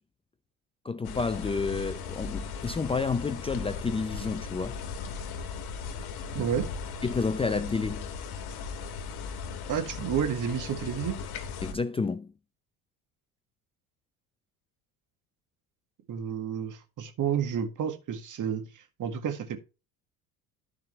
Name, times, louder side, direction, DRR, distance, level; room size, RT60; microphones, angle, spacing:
voice 1, 0.8-4.8 7.0-8.1 11.6-12.3, left 4 dB, 15° left, 0.5 m, -30 dB
sound 1, 1.0-11.7, left 5 dB, 60° left, 1.8 m, -37 dB
voice 2, 6.3-6.7 9.7-11.2 16.1-19.6, right 8 dB, 45° right, 1.9 m, -30 dB
13.5 x 4.9 x 3.2 m
hypercardioid pair, 65°, 44 cm